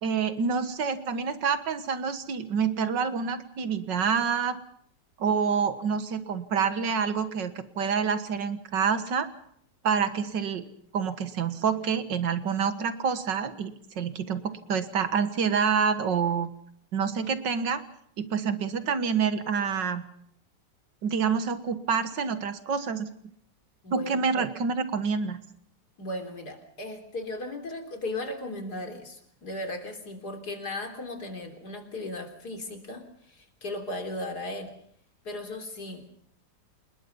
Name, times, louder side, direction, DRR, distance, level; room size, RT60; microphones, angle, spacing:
voice 1, 0.0-4.6 5.2-9.3 9.8-10.7 10.9-16.5 16.9-17.8 18.2-20.0 21.0-23.1 23.9-25.4, right 6 dB, 75° right, 10 dB, 2.1 m, -27 dB
voice 2, 23.8-24.5 26.0-34.7 35.2-36.2, left 2 dB, 60° left, 4 dB, 4.0 m, -36 dB
28.5 x 20.5 x 5.5 m, 0.68 s
omnidirectional pair, 2.0 m